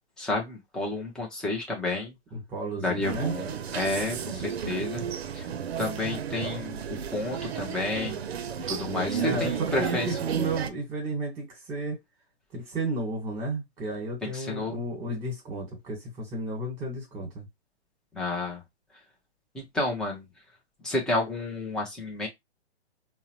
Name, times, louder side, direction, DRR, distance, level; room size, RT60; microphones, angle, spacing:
voice 1, 0.2-2.2 2.8-5.0 5.3-5.5 5.8-8.2 8.7-10.1 14.2-14.8 18.1-18.6 19.5-20.3 20.8-22.3, left 2 dB, ahead, 0.5 m, -31 dB
voice 2, 2.3-3.3 8.8-9.5 9.8-12.0 12.5-17.5, right 2 dB, 20° right, 1.2 m, -32 dB
sound 1, 3.0-10.7, right 7 dB, 70° right, 0.6 m, -33 dB
3.6 x 2.1 x 2.9 m
hypercardioid pair, 130°, 32 cm